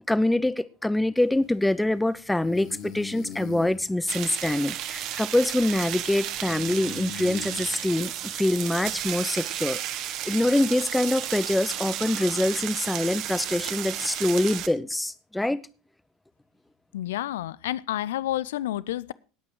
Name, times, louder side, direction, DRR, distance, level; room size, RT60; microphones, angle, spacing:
voice 1, 0.1-15.6, left 1 dB, 5° left, 0.9 m, -25 dB
sound 1, 1.2-8.9, left 7 dB, 45° left, 2.2 m, -44 dB
sound 2, 4.1-14.7, right 11 dB, 50° right, 1.4 m, -33 dB
voice 2, 16.9-19.1, left 13 dB, 65° left, 0.7 m, -30 dB
19.0 x 8.5 x 4.5 m
figure-of-eight pair, 75°, 0 cm